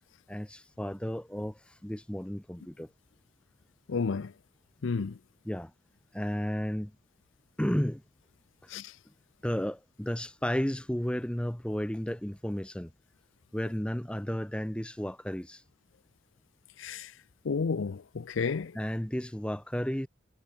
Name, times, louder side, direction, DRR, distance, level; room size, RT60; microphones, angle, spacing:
voice 1, 0.3-2.9 5.4-5.7 6.1-6.9 7.6-8.0 8.6-8.7 9.4-12.9 13.5-15.6 18.7-20.1, equal, 5° left, 0.7 m, -33 dB
voice 2, 3.9-4.3 4.8-5.2 8.7-8.9 16.8-17.1 17.4-18.7, left 5 dB, 80° left, 0.5 m, -31 dB
head